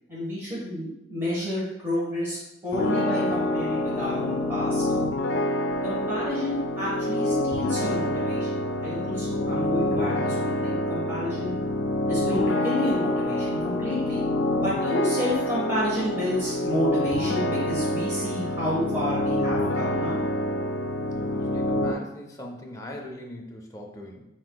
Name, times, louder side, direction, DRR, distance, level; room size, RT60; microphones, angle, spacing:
voice 1, 0.1-2.4 2.6-4.8 5.8-11.5 12.1-14.2 14.6-20.2, left 1 dB, 15° right, -8 dB, 1.2 m, -30 dB
sound 1, 2.7-21.9, left 1 dB, 90° left, 0.4 m, -27 dB
voice 2, 21.1-24.2, left 1 dB, 20° left, 0 dB, 0.6 m, -40 dB
7.4 x 2.7 x 2.2 m, 0.89 s
head